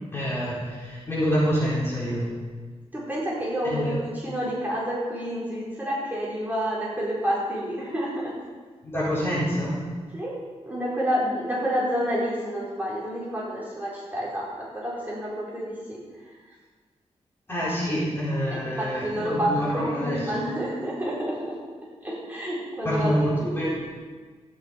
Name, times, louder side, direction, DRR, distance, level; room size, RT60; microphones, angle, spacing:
voice 1, 0.1-2.3 3.6-3.9 8.8-9.8 17.5-20.2 22.8-23.7, equal, 20° left, -8 dB, 3.9 m, -26 dB
voice 2, 2.9-8.3 10.1-10.3 10.6-16.4 18.5-21.5 22.0-23.5, equal, 15° right, -7 dB, 4.2 m, -29 dB
13.5 x 10.5 x 5.2 m, 1.5 s
wide cardioid pair, 155°, 12 cm